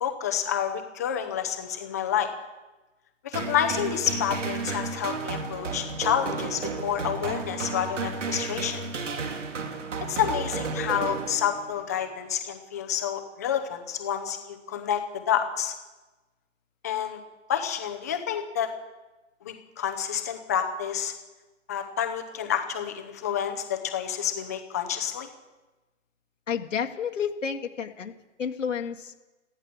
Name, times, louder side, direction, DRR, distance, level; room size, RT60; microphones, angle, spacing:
voice 1, 0.0-2.3 3.2-8.8 10.1-15.7 16.8-17.2 17.5-18.7 19.4-21.1 21.7-25.3, left 9 dB, 15° left, 6 dB, 0.7 m, -29 dB
sound 1, 3.3-11.8, right 4 dB, 75° right, 2.7 m, -33 dB
voice 2, 26.5-28.1 28.4-29.1, left 7 dB, 80° left, 3 dB, 1.5 m, -30 dB
15.0 x 13.0 x 7.0 m, 1.1 s
hypercardioid pair, 170°, 37 cm